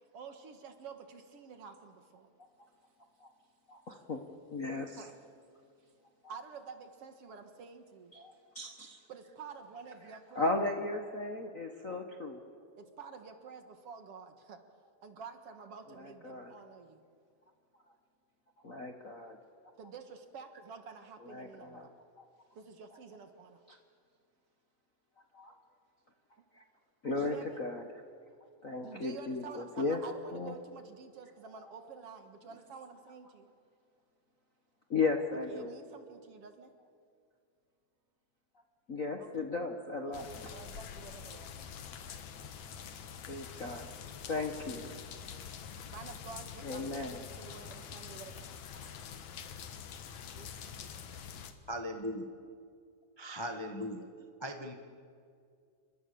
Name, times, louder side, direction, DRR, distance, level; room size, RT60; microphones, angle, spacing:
voice 1, 0.1-2.3 5.0-5.1 6.3-8.1 9.1-10.5 12.8-14.6 15.0-17.0 19.8-21.9 22.5-23.6 27.2-27.6 28.8-33.5 35.5-36.7 39.2-39.5 40.1-41.5 44.9-45.1 45.9-48.5 50.3-51.2, right 5 dB, 55° right, 7 dB, 2.3 m, -49 dB
voice 2, 3.7-4.2 4.5-5.1 8.1-9.0 10.3-12.4 16.0-16.5 17.9-18.0 18.6-19.4 21.2-21.9 22.2-22.3 23.7-23.8 25.3-25.5 26.5-26.6 27.0-27.8 28.6-30.0 30.3-30.5 34.9-35.7 38.9-40.3 42.1-42.2 43.3-43.9 44.3-44.9 46.6-47.2 48.7-48.9 49.6-49.7, left 3 dB, 40° left, 3 dB, 1.2 m, -36 dB
sound 1, 40.1-51.5, left 7 dB, 70° left, 2.7 m, -46 dB
voice 3, 51.7-52.2 53.2-54.1 54.4-54.7, equal, 15° left, 4 dB, 0.8 m, -38 dB
29.5 x 25.0 x 7.0 m, 2.3 s
omnidirectional pair, 3.3 m